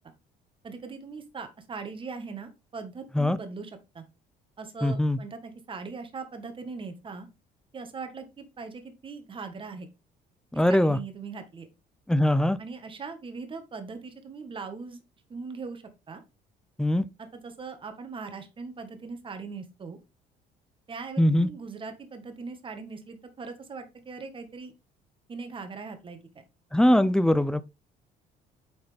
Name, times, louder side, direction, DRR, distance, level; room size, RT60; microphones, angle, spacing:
voice 1, 0.6-4.0 4.6-7.3 7.7-9.9 10.7-11.7 12.6-15.0 15.3-16.2 17.2-20.0 20.9-24.7 25.3-26.4, right 4 dB, 30° right, 1.4 m, -40 dB
voice 2, 4.8-5.2 10.5-11.0 12.1-12.6 16.8-17.0 21.2-21.5 26.7-27.6, left 1 dB, 5° left, 0.5 m, -21 dB
8.7 x 4.1 x 3.4 m
cardioid pair, 110°, 17 cm